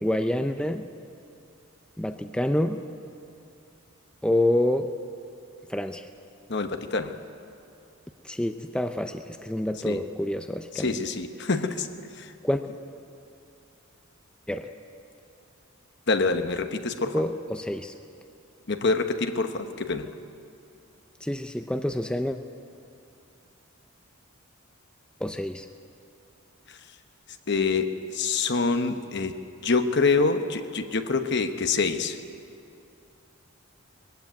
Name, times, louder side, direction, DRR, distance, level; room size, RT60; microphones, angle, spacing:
voice 1, 0.0-0.9 2.0-2.8 4.2-4.9 5.7-6.1 8.2-11.0 12.4-12.6 14.5-14.7 17.1-17.9 21.2-22.4 25.2-25.7, left 1 dB, 5° left, 6 dB, 0.5 m, -27 dB
voice 2, 6.5-7.1 9.8-10.0 10.7-11.9 12.2-12.3 16.1-17.1 18.7-20.1 27.5-29.3 29.6-32.2, left 4 dB, 55° left, 7 dB, 1.0 m, -26 dB
20.5 x 15.0 x 9.3 m, 2.6 s
head